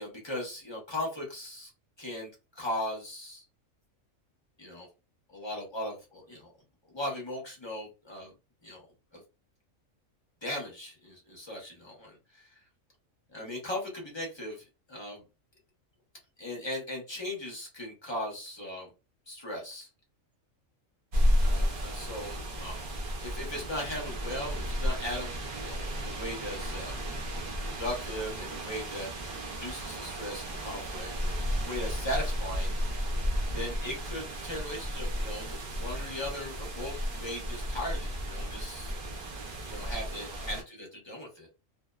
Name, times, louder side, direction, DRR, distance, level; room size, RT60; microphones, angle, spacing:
voice 1, 0.0-1.7 2.0-3.4 4.6-4.9 5.3-6.5 6.9-8.3 8.6-8.8 9.1-9.2 10.4-12.6 13.3-14.6 14.9-15.2 16.4-18.9 19.3-19.9 21.4-22.8 23.2-26.9 27.6-32.7 33.5-39.0 39.6-41.5, left 1 dB, 25° left, -1 dB, 0.7 m, -38 dB
sound 1, 21.1-40.6, equal, 55° right, 0.6 m, -33 dB
2.7 x 2.0 x 2.2 m, 0.28 s
omnidirectional pair, 1.4 m